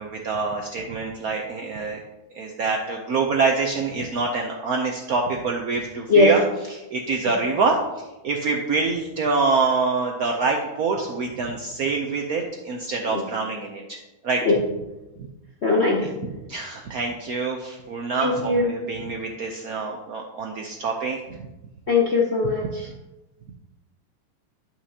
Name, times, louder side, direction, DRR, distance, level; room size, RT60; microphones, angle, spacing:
voice 1, 0.0-2.0 2.3-7.8 8.2-14.0 14.2-14.4 15.2-15.3 16.0-21.4 22.4-22.5, right 4 dB, 70° right, 1 dB, 0.9 m, -26 dB
voice 2, 15.6-16.1 18.2-18.7 21.9-22.9, left 3 dB, 55° left, -1 dB, 0.7 m, -20 dB
10.5 x 5.8 x 2.8 m, 1.0 s
omnidirectional pair, 2.2 m